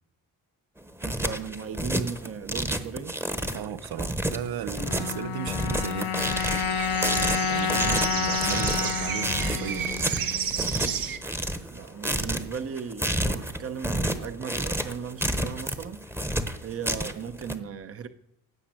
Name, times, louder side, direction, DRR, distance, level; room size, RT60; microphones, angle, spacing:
sound 1, 0.8-17.5, right 1 dB, 5° right, 1.0 m, -30 dB
voice 1, 1.0-3.2 3.5-3.8 7.8-8.1 11.7-16.0 16.6-18.1, right 6 dB, 40° right, 0.8 m, -37 dB
voice 2, 3.5-6.3 7.4-9.9, right 10 dB, 85° right, 0.8 m, -35 dB
sound 2, 4.8-11.2, left 9 dB, 70° left, 0.9 m, -30 dB
sound 3, 6.2-11.2, right 7 dB, 65° right, 1.2 m, -31 dB
16.5 x 6.1 x 8.9 m
wide cardioid pair, 150°, 36 cm